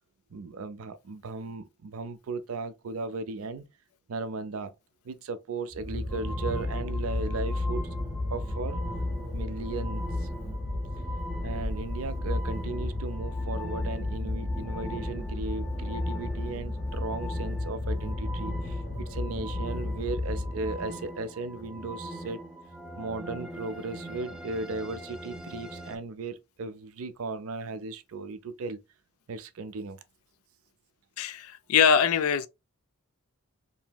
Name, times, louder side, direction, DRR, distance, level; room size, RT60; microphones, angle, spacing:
voice 1, 0.3-3.6 4.1-4.7 5.0-7.9 8.3-8.8 9.3-10.3 11.4-22.4 23.0-28.8 29.3-30.0, right 3 dB, 65° right, 0.4 m, -36 dB
sound 1, 5.7-21.1, left 2 dB, 50° left, 0.9 m, -33 dB
sound 2, 6.1-26.0, equal, 5° right, 0.4 m, -42 dB
voice 2, 31.2-32.5, left 7 dB, 70° left, 0.4 m, -23 dB
2.9 x 2.6 x 2.2 m
head